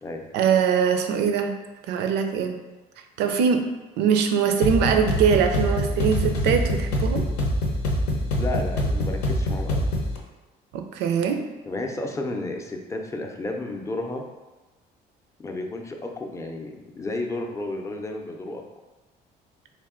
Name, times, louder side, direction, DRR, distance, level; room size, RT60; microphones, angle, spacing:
voice 1, 0.3-1.5 1.9-2.6 3.2-3.7 4.0-7.3 10.7-11.4, right 7 dB, 85° right, 6 dB, 0.5 m, -22 dB
sound 1, 4.6-10.2, left 1 dB, 85° left, 0.7 m, -25 dB
voice 2, 8.4-9.8 11.7-14.2 15.4-18.6, left 2 dB, 15° left, 2 dB, 0.5 m, -32 dB
3.3 x 2.6 x 3.6 m, 1.1 s
cardioid pair, 110°, 17 cm